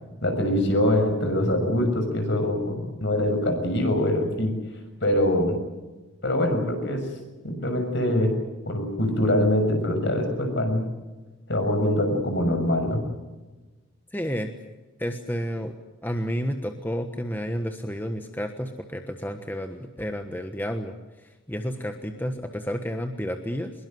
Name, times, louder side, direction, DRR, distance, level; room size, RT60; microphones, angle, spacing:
voice 1, 0.2-4.5 5.0-5.6 6.2-7.0 7.4-8.3 8.7-10.9 11.5-13.0, left 1 dB, 55° left, 6 dB, 6.3 m, -23 dB
voice 2, 14.1-14.5 15.0-15.7 16.0-21.0 21.5-23.7, equal, 10° left, 6 dB, 1.3 m, -30 dB
24.0 x 22.0 x 7.9 m, 1.2 s
head